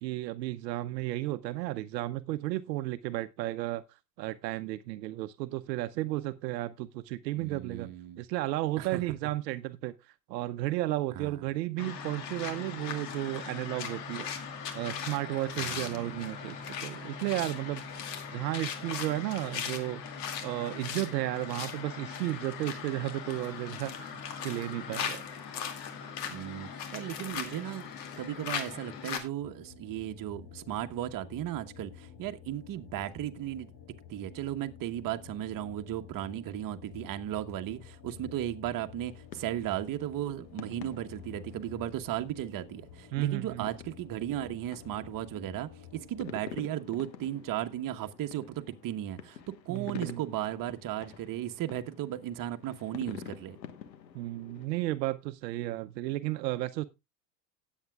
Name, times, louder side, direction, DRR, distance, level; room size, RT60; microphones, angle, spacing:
voice 1, 0.0-3.8 4.2-17.8 18.3-20.0 20.4-25.2 43.1-43.7 49.7-50.2 54.1-56.8, right 16 dB, 75° right, 0.8 m, -33 dB
voice 2, 7.4-8.2 8.8-9.0 11.1-11.4 15.6-16.2 26.3-27.8 28.2-33.7 34.1-49.4 49.6-53.6, right 12 dB, 40° right, 1.2 m, -36 dB
sound 1, 11.8-29.2, left 7 dB, 75° left, 2.4 m, -39 dB
sound 2, 29.4-46.4, left 8 dB, 40° left, 3.0 m, -51 dB
sound 3, 39.0-54.7, left 9 dB, 90° left, 1.4 m, -49 dB
18.0 x 8.4 x 2.3 m
hypercardioid pair, 90°, 50 cm